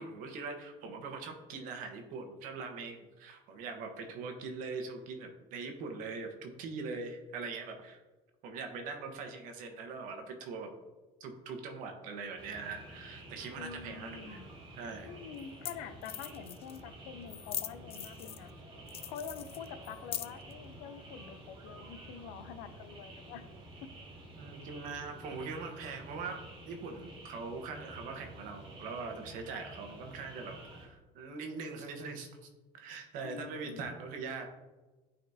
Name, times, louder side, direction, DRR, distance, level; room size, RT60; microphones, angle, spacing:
voice 1, 0.0-8.0 8.4-10.7 11.2-14.4 14.8-15.1 24.4-34.5, right 4 dB, 70° right, 4 dB, 1.2 m, -42 dB
sound 1, 12.4-30.9, right 1 dB, 35° right, 2.0 m, -50 dB
voice 2, 13.6-14.5 15.0-18.5 19.1-23.4 23.8-23.9 33.2-33.9, left 7 dB, 85° left, 10 dB, 0.6 m, -46 dB
sound 2, 14.6-14.7 15.4-15.5 15.6-15.7 16.0-16.8 17.3-18.5 18.9-20.5, left 11 dB, 40° left, 0.5 m, -41 dB
9.4 x 4.2 x 2.8 m, 1.2 s
supercardioid pair, 105°, 15 cm